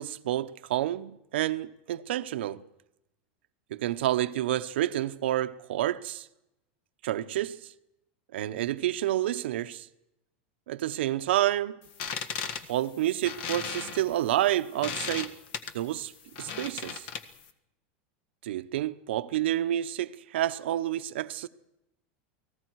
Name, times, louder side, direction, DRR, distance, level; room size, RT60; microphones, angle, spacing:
voice 1, 0.0-2.6 3.7-6.3 7.0-7.6 8.3-9.9 10.7-11.8 12.7-15.3 15.7-16.1 16.4-17.1 18.4-21.5, right 13 dB, 85° right, 0.9 m, -29 dB
sound 1, 11.8-17.5, left 7 dB, 55° left, 1.6 m, -37 dB
29.5 x 19.5 x 4.7 m
supercardioid pair, 160°, 6 cm